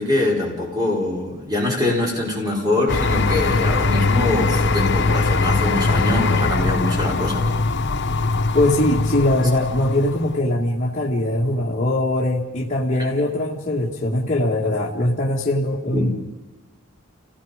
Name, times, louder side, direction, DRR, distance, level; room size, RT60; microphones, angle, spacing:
voice 1, 0.0-7.6 15.9-16.1, left 2 dB, 20° right, -1 dB, 4.9 m, -23 dB
sound 1, 2.9-10.3, left 3 dB, 55° left, 1.0 m, -21 dB
voice 2, 8.5-16.2, left 1 dB, 35° left, -4 dB, 2.2 m, -21 dB
30.0 x 18.0 x 5.2 m, 1.1 s
head